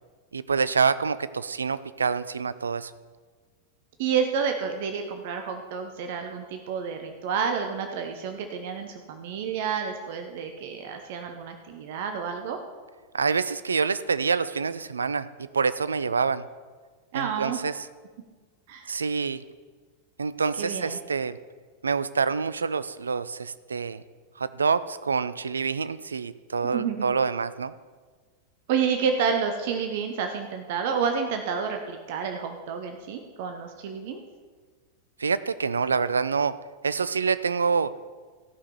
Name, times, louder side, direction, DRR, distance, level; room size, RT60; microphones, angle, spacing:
voice 1, 0.3-2.9 13.1-16.5 17.1-17.8 18.9-19.4 20.2-21.4 21.8-24.0 24.4-27.7 35.2-36.6 36.8-37.9, right 5 dB, 75° right, 15 dB, 0.4 m, -26 dB
voice 2, 4.0-12.6 17.1-17.6 18.7-18.9 20.6-21.0 26.7-27.1 28.7-34.2, right 6 dB, 50° right, 5 dB, 0.9 m, -29 dB
14.0 x 6.0 x 6.8 m, 1.5 s
figure-of-eight pair, 90°, 0 cm